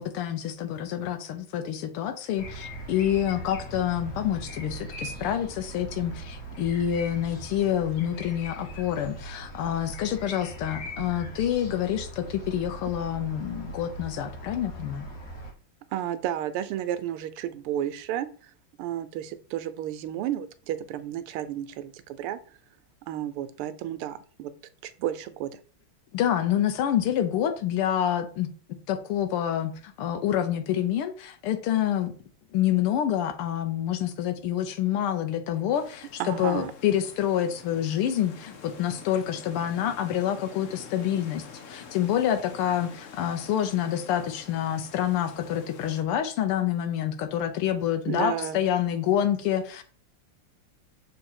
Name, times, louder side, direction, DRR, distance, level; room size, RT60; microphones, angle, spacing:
voice 1, 0.0-15.1 26.1-32.1 32.5-49.8, left 10 dB, 85° left, 8 dB, 1.6 m, -27 dB
sound 1, 2.4-15.5, right 1 dB, 45° left, 1.6 m, -40 dB
voice 2, 15.9-18.5 18.8-22.4 23.1-24.5 24.8-25.5 36.2-36.7 48.1-48.6, right 11 dB, 85° right, 12 dB, 1.5 m, -32 dB
sound 2, 35.7-46.0, left 6 dB, 65° left, 0.7 m, -47 dB
6.3 x 3.8 x 4.3 m, 0.42 s
omnidirectional pair, 2.4 m